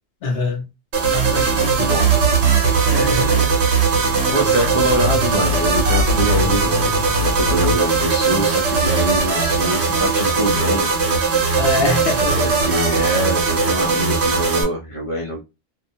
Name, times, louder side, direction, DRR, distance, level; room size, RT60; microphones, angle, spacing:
voice 1, 0.2-0.6 1.1-1.5 2.9-3.4 11.6-12.6, left 3 dB, 65° left, 0.8 m, -24 dB
sound 1, 0.9-14.6, right 4 dB, 75° right, 1.1 m, -18 dB
voice 2, 1.2-2.1 2.9-3.6 4.3-10.9 12.4-15.4, right 1 dB, 35° left, 0.6 m, -24 dB
2.5 x 2.2 x 2.6 m
omnidirectional pair, 1.2 m